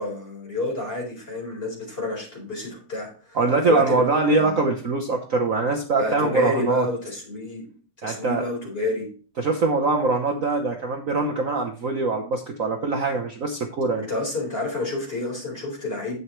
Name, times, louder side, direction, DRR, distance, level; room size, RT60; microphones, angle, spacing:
voice 1, 0.0-4.0 4.3-4.6 6.0-7.7 8.0-9.1 14.0-16.2, left 2 dB, 30° left, -1 dB, 4.5 m, -29 dB
voice 2, 3.3-6.9 8.0-8.5 9.4-14.1, right 3 dB, 50° right, 2 dB, 1.2 m, -23 dB
11.0 x 8.3 x 3.1 m, 0.40 s
omnidirectional pair, 2.1 m